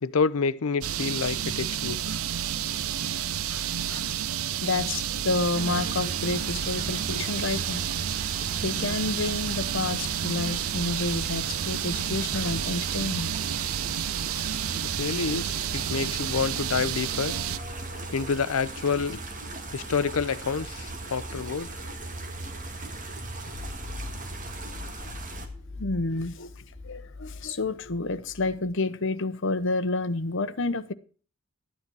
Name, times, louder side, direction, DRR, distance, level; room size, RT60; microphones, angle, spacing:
voice 1, 0.0-2.2 14.9-17.3 18.1-19.2 19.7-21.8, left 5 dB, 75° left, 0.6 m, -28 dB
sound 1, 0.8-17.6, right 10 dB, 70° right, 0.5 m, -30 dB
voice 2, 3.5-4.2 4.6-7.9 8.6-13.3 14.6-14.8 25.8-30.9, left 3 dB, 60° left, 0.9 m, -30 dB
sound 2, 5.5-25.5, right 2 dB, 35° right, 1.9 m, -38 dB
sound 3, 23.5-28.7, left 3 dB, ahead, 3.6 m, -42 dB
13.0 x 9.6 x 4.7 m
head